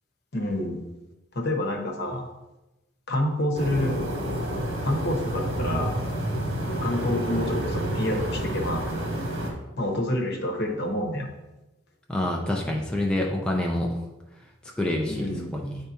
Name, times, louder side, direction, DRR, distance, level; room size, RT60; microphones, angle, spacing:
voice 1, 0.3-0.8 1.3-2.3 3.1-3.9 4.8-5.9 6.7-8.9 9.8-11.3 15.0-15.5, left 1 dB, 55° left, 2 dB, 1.0 m, -28 dB
sound 1, 3.5-9.5, right 1 dB, 80° right, 1.9 m, -29 dB
voice 2, 12.1-14.0 14.8-15.8, left 1 dB, 5° left, -1 dB, 0.5 m, -27 dB
9.6 x 3.4 x 2.8 m, 1.0 s
head